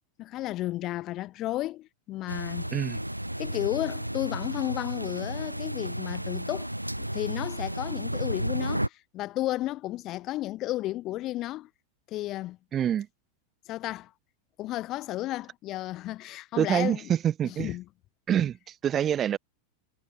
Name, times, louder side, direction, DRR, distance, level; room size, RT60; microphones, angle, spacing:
voice 1, 0.2-2.7 3.4-6.7 7.0-11.7 12.1-12.6 13.7-14.1 14.6-17.1 17.4-17.8, left 16 dB, 35° left, 3.4 m, -33 dB
sound 1, 2.3-8.9, right 1 dB, 90° right, 1.2 m, -33 dB
voice 2, 12.7-13.1 16.6-17.7 18.3-19.4, right 9 dB, 25° right, 2.3 m, -26 dB
figure-of-eight pair, 90°, 0 cm